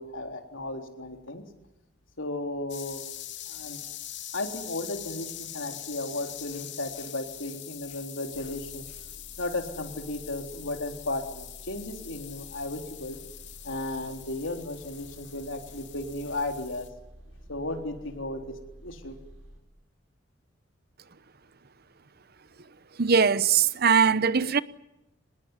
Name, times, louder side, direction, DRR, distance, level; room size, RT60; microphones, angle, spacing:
voice 1, 0.0-1.4 2.2-3.0 3.5-3.8 4.3-9.0 9.4-13.2 13.6-16.9 17.5-18.6 18.8-19.2, left 2 dB, 80° left, 3.8 m, -35 dB
sound 1, 2.7-16.9, left 12 dB, 65° left, 2.5 m, -43 dB
sound 2, 8.3-19.6, equal, 85° right, 6.3 m, -50 dB
voice 2, 23.0-24.6, right 6 dB, 50° right, 0.9 m, -21 dB
25.0 x 20.0 x 9.8 m
head